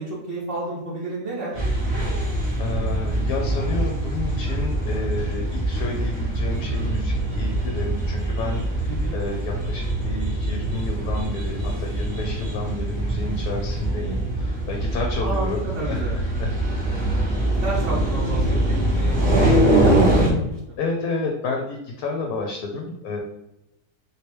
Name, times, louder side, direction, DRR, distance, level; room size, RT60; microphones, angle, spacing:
voice 1, 0.0-1.5 8.8-9.2 15.2-16.2 17.6-20.8, right 2 dB, 55° right, -6 dB, 1.1 m, -31 dB
sound 1, 1.5-20.3, right 1 dB, 30° right, 0.5 m, -23 dB
voice 2, 2.6-15.6 15.9-16.5 20.8-23.2, left 3 dB, 70° left, 1 dB, 1.0 m, -30 dB
3.1 x 3.0 x 3.0 m, 0.88 s
omnidirectional pair, 1.7 m